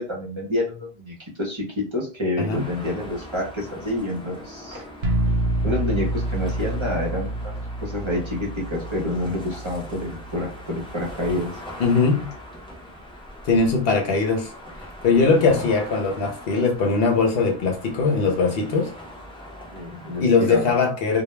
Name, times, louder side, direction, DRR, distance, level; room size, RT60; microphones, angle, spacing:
voice 1, 0.0-5.1 5.6-7.5 7.8-11.5 15.3-15.6 19.7-20.7, left 1 dB, 35° right, 0.6 m, -28 dB
sound 1, 2.5-20.2, left 1 dB, 5° left, 0.4 m, -41 dB
sound 2, 5.0-10.8, right 1 dB, 70° right, 0.8 m, -28 dB
voice 2, 11.8-12.3 13.4-14.5 15.0-18.9 20.2-21.2, left 4 dB, 70° left, 0.9 m, -20 dB
2.2 x 2.1 x 3.0 m
omnidirectional pair, 1.0 m